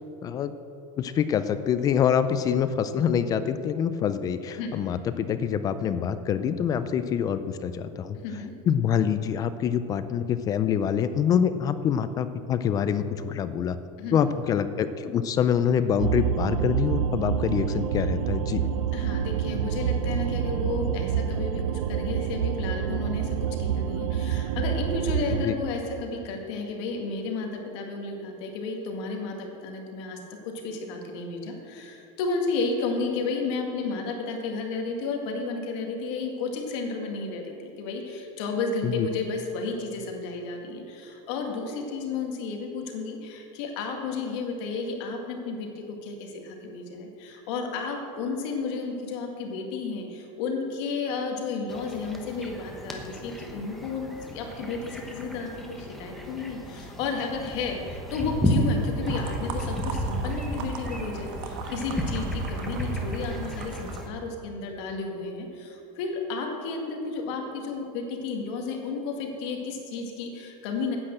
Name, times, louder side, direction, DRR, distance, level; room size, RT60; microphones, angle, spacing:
voice 1, 0.2-0.5 1.0-8.2 8.7-13.8 14.1-18.6 25.4-25.5 38.8-39.1, left 8 dB, 20° left, 12 dB, 0.4 m, -25 dB
sound 1, 16.0-25.5, right 8 dB, 80° right, 0.7 m, -27 dB
voice 2, 18.9-30.2 30.4-71.0, left 4 dB, 55° left, 2 dB, 2.0 m, -32 dB
sound 2, 51.7-64.1, equal, ahead, 1.0 m, -32 dB
sound 3, 59.1-64.0, right 6 dB, 55° right, 1.4 m, -40 dB
9.8 x 8.8 x 7.7 m, 2.8 s
supercardioid pair, 165°, 17 cm